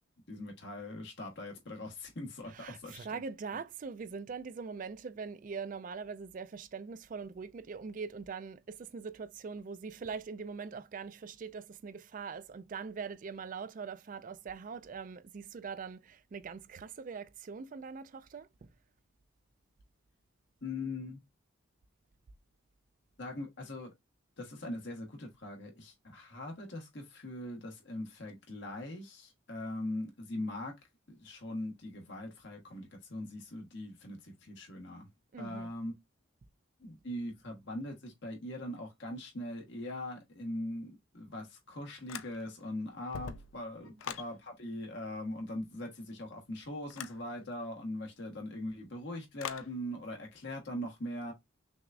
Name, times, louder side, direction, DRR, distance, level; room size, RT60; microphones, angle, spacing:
voice 1, 0.3-3.2 20.6-21.2 23.2-23.9 24.4-30.7 31.1-35.1 35.4-35.9 36.8-51.3, left 1 dB, 60° left, 1.3 m, -41 dB
voice 2, 2.5-18.7 35.3-35.7 43.8-43.9, right 5 dB, 40° right, 0.3 m, -42 dB
sound 1, 42.1-42.7 43.0-44.3 46.9-47.2 49.4-49.7, left 8 dB, 80° left, 0.4 m, -42 dB
6.0 x 2.3 x 2.5 m
head